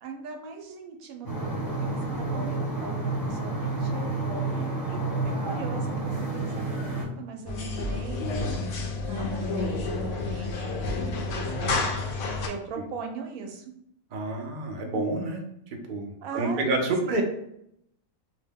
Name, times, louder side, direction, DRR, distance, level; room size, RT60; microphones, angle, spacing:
voice 1, 0.0-3.0 3.2-5.0 5.2-8.3 8.8-11.9 12.4-13.7 16.2-16.7 17.0-17.2, right 4 dB, 90° right, 3 dB, 1.0 m, -40 dB
sound 1, 1.2-7.0, right 2 dB, 20° left, 0.6 m, -29 dB
sound 2, 7.4-12.5, left 3 dB, 70° left, 0.9 m, -30 dB
voice 2, 14.1-15.4 15.9-17.2, right 2 dB, 55° right, 2 dB, 0.5 m, -28 dB
2.8 x 2.1 x 3.4 m, 0.75 s
omnidirectional pair, 1.4 m